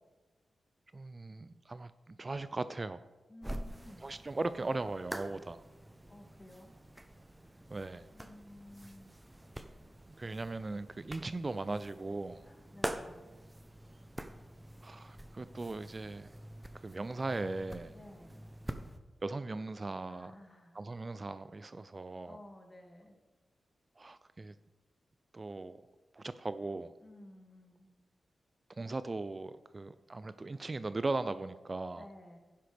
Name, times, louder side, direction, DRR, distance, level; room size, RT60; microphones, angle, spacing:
voice 1, 0.9-3.0 4.0-5.6 7.7-8.0 10.2-12.4 14.8-16.3 16.7-17.9 19.2-20.3 20.7-22.4 24.0-24.5 25.3-25.8 26.1-26.9 28.8-32.1, right 3 dB, 40° right, 13 dB, 0.4 m, -38 dB
voice 2, 3.3-4.0 6.1-6.7 8.1-9.1 12.4-13.3 17.9-18.4 20.1-20.8 22.2-23.1 27.0-27.9 32.0-32.4, left 1 dB, 25° left, 2 dB, 2.2 m, -54 dB
sound 1, 3.4-19.0, right 1 dB, 15° right, 0.8 m, -46 dB
11.0 x 10.0 x 3.5 m, 1.2 s
cardioid pair, 50°, 0 cm